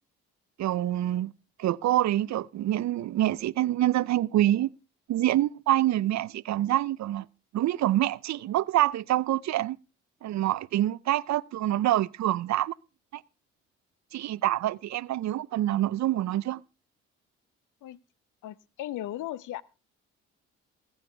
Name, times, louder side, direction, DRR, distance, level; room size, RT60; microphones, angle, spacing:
voice 1, 0.6-1.3 1.6-4.7 5.1-7.3 7.5-9.8 10.2-12.7 13.1-13.2 14.1-16.6, right 14 dB, 60° right, 0.6 m, -26 dB
voice 2, 18.4-19.6, left 13 dB, 70° left, 0.8 m, -36 dB
21.5 x 8.8 x 3.4 m
supercardioid pair, 55°, 32 cm